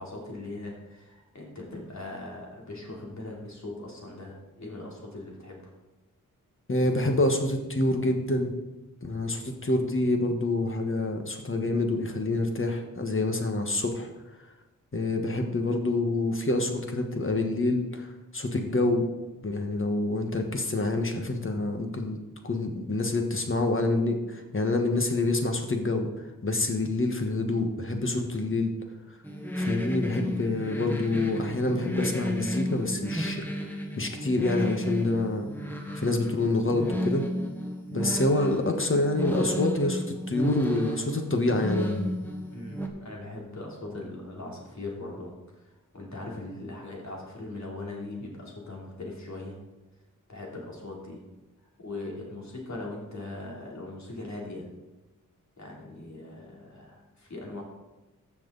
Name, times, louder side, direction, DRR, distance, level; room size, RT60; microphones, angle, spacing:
voice 1, 0.0-5.6 42.5-45.3 45.9-49.6 50.3-51.2 51.8-54.7 55.6-57.6, left 2 dB, 55° left, -2 dB, 3.2 m, -40 dB
voice 2, 6.7-8.5 9.0-14.1 14.9-18.1 18.3-19.1 19.4-22.2 22.4-26.1 26.4-28.7 29.6-33.4 34.0-35.5 36.0-37.2 37.9-42.1, left 2 dB, 40° left, 4 dB, 1.4 m, -27 dB
sound 1, 29.2-42.9, equal, 5° left, 1.4 m, -33 dB
14.5 x 6.0 x 4.1 m, 1.1 s
wide cardioid pair, 80°, 33 cm